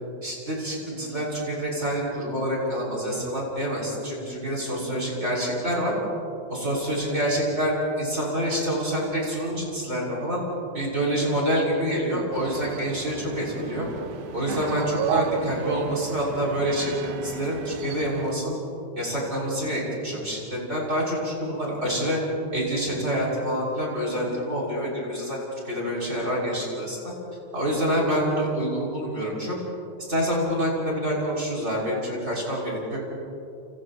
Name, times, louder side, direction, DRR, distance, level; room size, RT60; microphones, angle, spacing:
voice 1, 0.2-5.9 6.5-10.4 10.7-13.9 14.3-18.6 18.9-22.2 22.5-27.0 27.5-29.6 30.1-33.0, equal, 20° right, -4 dB, 6.5 m, -27 dB
sound 1, 12.3-18.3, right 8 dB, 85° right, 2.4 m, -34 dB
29.5 x 29.5 x 3.1 m, 2.8 s
omnidirectional pair, 3.5 m